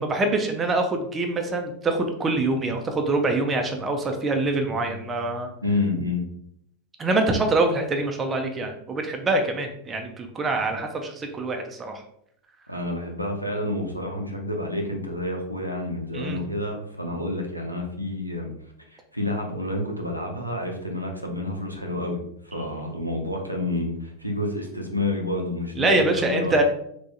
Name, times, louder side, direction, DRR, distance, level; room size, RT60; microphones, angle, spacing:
voice 1, 0.0-5.5 7.0-12.0 16.1-16.4 22.7-22.9 25.8-26.6, right 2 dB, 20° right, 4 dB, 0.5 m, -25 dB
voice 2, 5.6-6.2 12.7-18.5 18.9-26.6, left 1 dB, 90° right, 1 dB, 0.6 m, -29 dB
3.4 x 3.0 x 2.7 m, 0.71 s
figure-of-eight pair, 90°, 0 cm